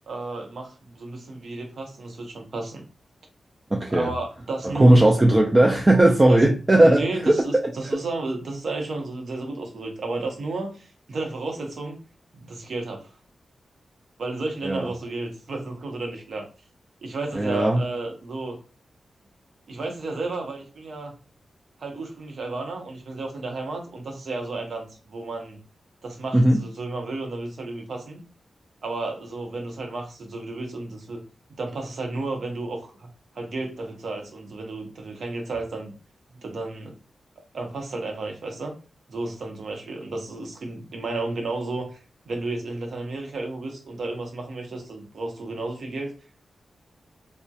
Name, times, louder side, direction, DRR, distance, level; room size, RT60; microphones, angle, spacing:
voice 1, 0.1-2.8 3.9-5.0 6.3-6.4 6.8-12.0 12.3-13.1 14.2-16.4 17.0-18.6 19.7-21.1 21.8-25.6 26.0-28.2 28.8-31.2 31.6-33.1 33.3-35.9 36.4-36.9 37.5-38.7 39.1-46.1, right 2 dB, 65° right, 2 dB, 0.7 m, -32 dB
voice 2, 3.7-4.1 4.6-7.7 14.6-14.9 17.4-17.8 26.3-26.6, right 1 dB, 20° right, 0 dB, 0.3 m, -17 dB
2.3 x 2.1 x 2.7 m, 0.35 s
wide cardioid pair, 120°, 0 cm